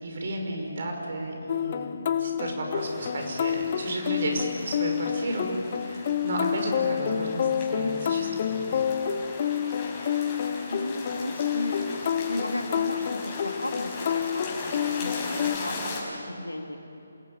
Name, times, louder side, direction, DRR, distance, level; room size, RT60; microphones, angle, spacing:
voice 1, 0.0-8.9, right 2 dB, 50° right, 1 dB, 5.5 m, -33 dB
sound 1, 1.5-15.6, left 8 dB, 35° left, 0.9 m, -29 dB
sound 2, 2.8-16.0, left 3 dB, 20° left, 5.3 m, -39 dB
voice 2, 10.7-11.9 12.3-16.8, left 1 dB, 85° left, 3 dB, 2.9 m, -35 dB
27.5 x 17.0 x 9.2 m, 2.7 s
figure-of-eight pair, 145°, 0 cm